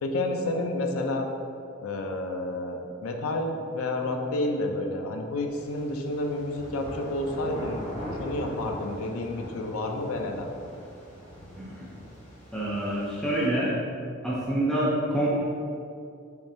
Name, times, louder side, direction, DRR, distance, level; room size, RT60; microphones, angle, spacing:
voice 1, 0.0-1.3 1.8-7.8 8.2-10.5, left 2 dB, 90° left, 3 dB, 0.4 m, -30 dB
sound 1, 5.5-13.5, equal, 30° left, 0.8 m, -41 dB
voice 2, 11.6-11.9 12.5-13.7 14.2-15.4, right 1 dB, 5° left, -7 dB, 0.4 m, -27 dB
3.5 x 3.3 x 2.6 m, 2.4 s
head